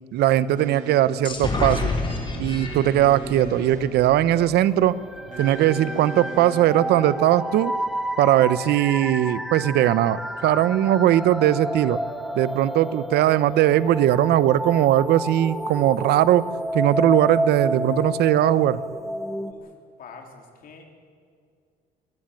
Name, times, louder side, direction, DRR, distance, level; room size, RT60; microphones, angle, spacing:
voice 1, 0.0-1.9 2.4-4.9 5.4-7.7 8.2-12.0 12.3-16.4 16.7-18.8, right 12 dB, 75° right, 17 dB, 0.9 m, -19 dB
sound 1, 0.5-19.0, right 2 dB, 50° right, 6.1 m, -43 dB
sound 2, 1.2-4.9, left 2 dB, 30° left, 4.1 m, -30 dB
sound 3, 4.3-19.5, equal, ahead, 1.4 m, -30 dB
voice 2, 20.0-20.8, left 5 dB, 55° left, 3 dB, 3.8 m, -45 dB
23.0 x 15.0 x 9.1 m, 2.2 s
cardioid pair, 110°, 17 cm